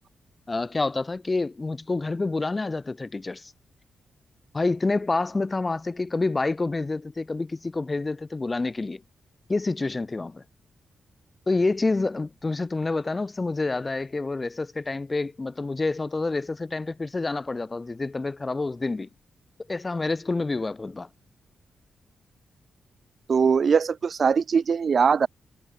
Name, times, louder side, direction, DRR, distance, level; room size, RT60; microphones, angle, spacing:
voice 1, 0.5-3.5 4.5-9.0 9.5-10.4 11.5-19.1 19.7-21.1, left 3 dB, 30° left, 2.5 m, -28 dB
voice 2, 23.3-25.3, right 6 dB, 55° right, 5.3 m, -21 dB
cardioid pair, 70°, 0 cm